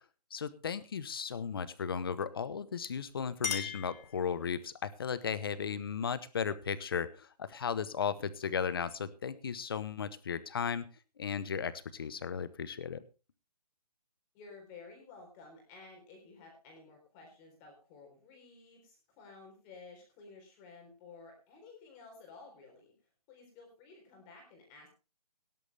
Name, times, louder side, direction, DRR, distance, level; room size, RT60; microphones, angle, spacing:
voice 1, 0.3-10.9 11.2-13.0, left 7 dB, 35° left, 16 dB, 1.0 m, -35 dB
Chink clink, 2.9-4.7, left 6 dB, 85° left, 3.3 m, -40 dB
voice 2, 14.3-22.9 23.3-24.9, left 4 dB, 15° left, 2 dB, 3.9 m, -54 dB
18.0 x 11.0 x 3.4 m, 0.32 s
hypercardioid pair, 175°, 21 cm